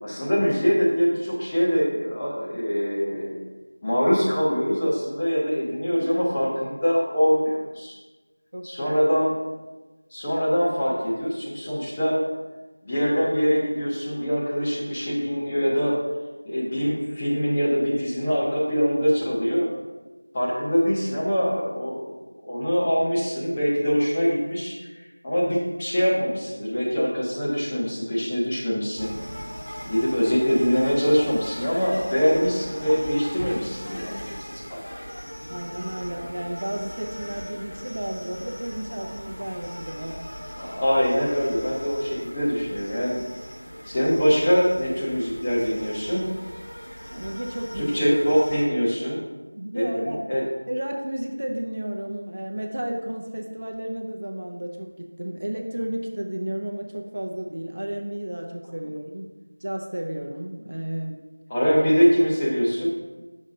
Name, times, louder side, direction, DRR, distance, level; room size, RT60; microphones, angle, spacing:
voice 1, 0.0-3.4 3.8-7.9 8.6-9.3 10.1-12.2 12.8-15.9 16.4-19.7 20.3-22.0 22.4-24.7 25.2-29.1 29.8-34.3 34.7-34.8 40.6-43.2 43.8-46.3 47.8-49.2 49.7-50.4 61.5-63.0, equal, 15° left, -8 dB, 0.7 m, -23 dB
voice 2, 8.5-9.0 35.5-40.2 47.1-48.0 49.5-50.3 50.7-59.3 59.6-61.2, right 1 dB, 45° right, 2 dB, 0.6 m, -32 dB
sound 1, 29.0-48.6, equal, 45° left, 1.8 m, -39 dB
7.4 x 6.2 x 2.7 m, 1.2 s
figure-of-eight pair, 175°, 0 cm